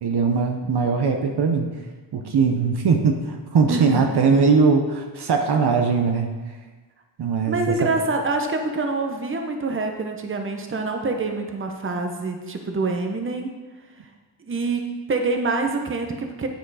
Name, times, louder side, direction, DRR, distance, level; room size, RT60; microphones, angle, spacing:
voice 1, 0.0-1.7 2.1-6.3 7.2-7.9, right 5 dB, 60° right, 4 dB, 0.8 m, -20 dB
voice 2, 3.7-4.1 7.4-13.5 14.4-16.5, right 3 dB, 30° right, 4 dB, 0.9 m, -26 dB
9.0 x 5.1 x 4.8 m, 1.3 s
wide cardioid pair, 120°, 44 cm